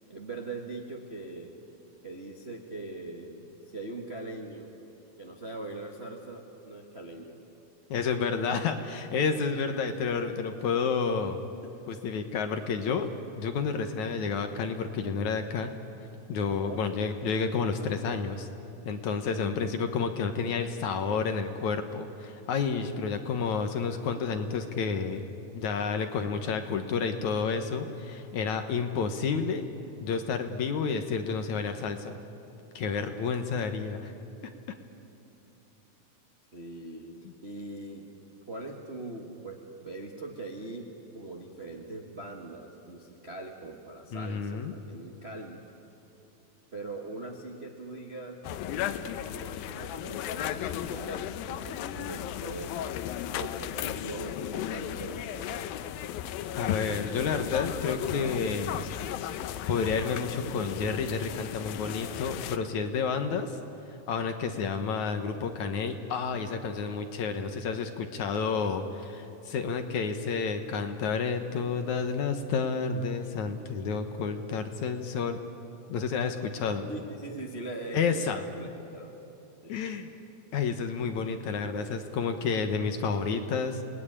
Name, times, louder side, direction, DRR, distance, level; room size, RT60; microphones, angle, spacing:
voice 1, 0.1-1.6 2.0-4.7 5.2-7.4 10.0-10.1 11.6-11.7 16.7-16.8 22.8-23.3 36.5-37.2 37.4-38.1 38.5-45.6 46.7-52.9 53.3-55.7 76.9-79.2 79.6-79.7, right 2 dB, 35° right, 1 dB, 1.0 m, -41 dB
voice 2, 7.9-11.4 11.9-13.1 13.4-15.7 16.3-18.5 18.9-25.2 25.6-29.6 30.0-32.2 32.8-34.1 44.1-44.7 56.6-58.8 59.7-63.6 64.1-75.4 75.9-76.9 77.9-78.4 79.7-80.1 80.5-83.8, left 5 dB, 65° left, 7 dB, 2.3 m, -30 dB
sound 1, 48.4-62.6, left 11 dB, 90° left, 2.6 m, -35 dB
28.5 x 19.5 x 10.0 m, 2.8 s
omnidirectional pair, 4.0 m